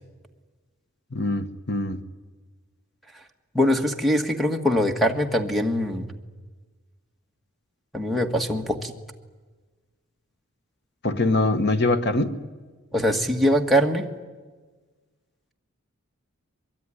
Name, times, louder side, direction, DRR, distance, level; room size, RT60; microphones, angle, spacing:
voice 1, 1.1-2.0 11.0-12.4, left 2 dB, 55° left, 1.4 m, -23 dB
voice 2, 3.5-6.1 7.9-8.9 12.9-14.1, equal, ahead, 1.7 m, -22 dB
23.0 x 23.0 x 10.0 m
head